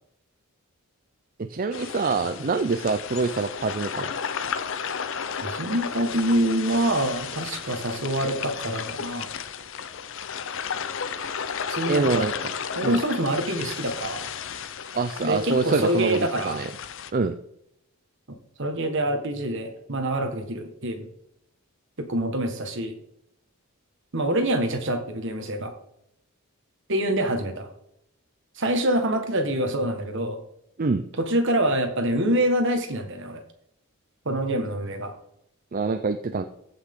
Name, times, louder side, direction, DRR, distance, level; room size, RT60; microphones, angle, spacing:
voice 1, 1.4-4.1 11.9-12.3 12.8-13.0 14.9-16.7 17.1-17.4 30.8-31.0 35.7-36.4, right 4 dB, 40° right, 9 dB, 0.5 m, -25 dB
sound 1, 1.7-17.1, left 7 dB, 60° left, 0.6 m, -33 dB
voice 2, 5.4-9.3 11.7-12.3 12.8-14.3 15.2-16.6 18.6-21.1 22.0-22.9 24.1-25.7 26.9-27.7 28.6-30.4 31.2-33.4 34.2-35.1, right 1 dB, 55° right, 6 dB, 1.5 m, -26 dB
14.5 x 5.9 x 3.8 m, 0.77 s
head